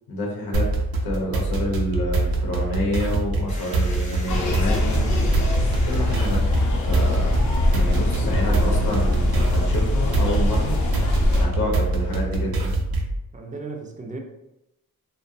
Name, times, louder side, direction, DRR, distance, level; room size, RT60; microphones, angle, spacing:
voice 1, 0.1-0.7 1.0-5.1 5.8-6.4 6.8-7.4 7.7-10.8 11.4-12.7, left 1 dB, 90° left, -1 dB, 0.7 m, -28 dB
sound 1, 0.5-13.2, right 2 dB, 85° right, 0.5 m, -25 dB
sound 2, 3.5-12.2, left 1 dB, 20° left, 0.7 m, -46 dB
sound 3, 4.3-11.5, left 2 dB, 55° left, 0.5 m, -22 dB
voice 2, 8.3-9.4 13.3-14.2, right 2 dB, 20° right, 1 dB, 0.4 m, -36 dB
2.5 x 2.0 x 2.6 m, 0.89 s
wide cardioid pair, 105°, 36 cm